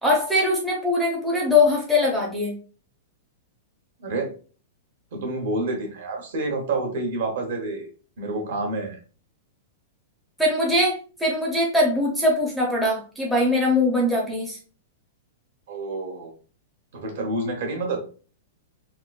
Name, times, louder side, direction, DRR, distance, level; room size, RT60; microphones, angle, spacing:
voice 1, 0.0-2.5 10.4-14.6, left 2 dB, ahead, -4 dB, 0.5 m, -21 dB
voice 2, 4.0-4.3 5.1-7.9 8.2-9.0 15.7-16.3 16.9-18.0, right 2 dB, 55° right, 3 dB, 1.0 m, -28 dB
3.6 x 2.5 x 2.2 m, 0.38 s
supercardioid pair, 180°, 0 cm